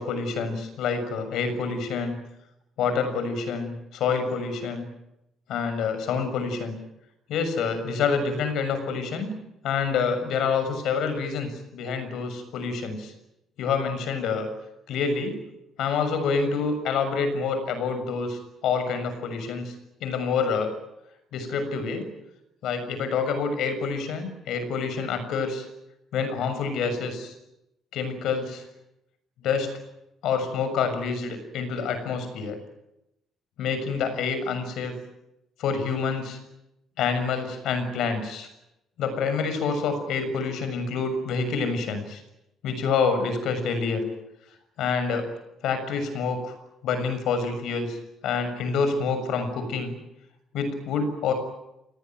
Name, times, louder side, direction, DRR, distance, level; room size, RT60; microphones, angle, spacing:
voice 1, 0.0-2.1 2.8-4.9 5.5-6.8 7.3-9.3 9.6-13.1 13.6-14.5 14.9-15.4 15.8-19.7 20.0-20.8 21.3-22.1 22.6-25.7 26.1-27.3 27.9-28.6 29.4-29.7 30.2-32.6 33.6-35.0 35.6-36.4 37.0-38.5 39.0-42.2 42.6-44.0 44.8-45.3 45.6-46.6 46.8-48.0 48.2-49.9 50.5-51.3, left 5 dB, 60° left, 9 dB, 6.7 m, -27 dB
28.0 x 19.5 x 9.3 m, 0.87 s
cardioid pair, 175°, 0 cm